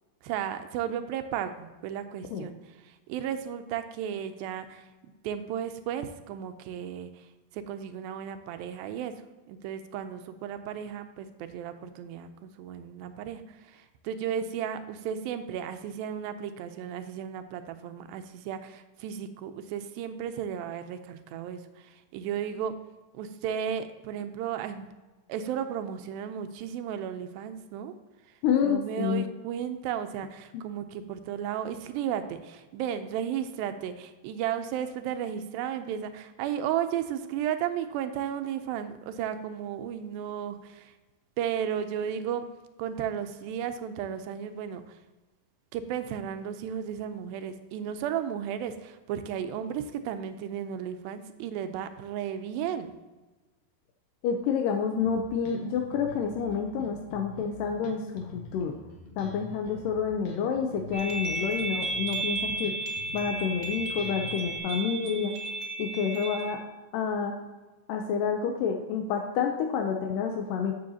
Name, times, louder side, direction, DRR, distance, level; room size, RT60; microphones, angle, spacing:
voice 1, 0.2-4.9 5.2-9.1 9.5-22.7 23.1-24.9 25.3-27.9 28.3-28.4 28.6-40.9 41.4-42.5 42.8-45.0 45.7-52.9, right 9 dB, 85° right, 9 dB, 2.4 m, -34 dB
voice 2, 28.4-29.2 54.2-58.7 59.2-62.7 63.1-65.3 65.8-66.6 66.9-67.3 67.9-70.7, left 6 dB, 80° left, 3 dB, 2.2 m, -29 dB
Bass guitar, 55.0-64.6, left 1 dB, 60° left, 1.8 m, -46 dB
sound 1, 60.9-66.5, right 2 dB, 55° right, 1.4 m, -33 dB
11.5 x 7.6 x 2.8 m, 1.2 s
omnidirectional pair, 4.1 m